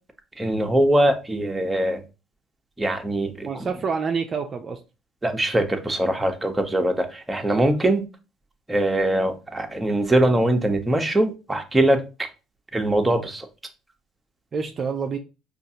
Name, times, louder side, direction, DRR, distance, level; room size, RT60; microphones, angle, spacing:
voice 1, 0.4-2.0 2.8-3.7 5.2-8.0 8.7-12.0 12.7-13.5, right 1 dB, 15° right, 4 dB, 0.9 m, -22 dB
voice 2, 3.4-4.8 14.5-15.2, right 5 dB, 40° right, 4 dB, 0.5 m, -27 dB
5.0 x 2.4 x 2.8 m, 0.30 s
supercardioid pair, 75°, 0 cm